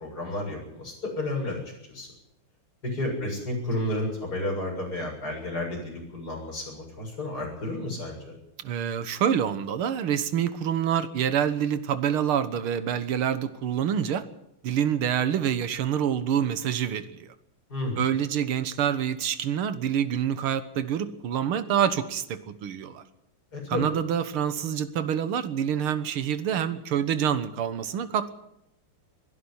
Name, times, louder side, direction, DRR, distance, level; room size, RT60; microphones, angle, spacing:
voice 1, 0.0-1.6 1.9-2.1 2.8-8.3 17.7-18.0 23.5-23.9, left 1 dB, 45° left, 0 dB, 7.6 m, -31 dB
voice 2, 8.6-14.2 14.6-17.3 18.0-23.0 23.7-28.3, right 9 dB, 85° right, 12 dB, 2.1 m, -27 dB
22.0 x 12.0 x 9.9 m, 0.82 s
omnidirectional pair, 2.3 m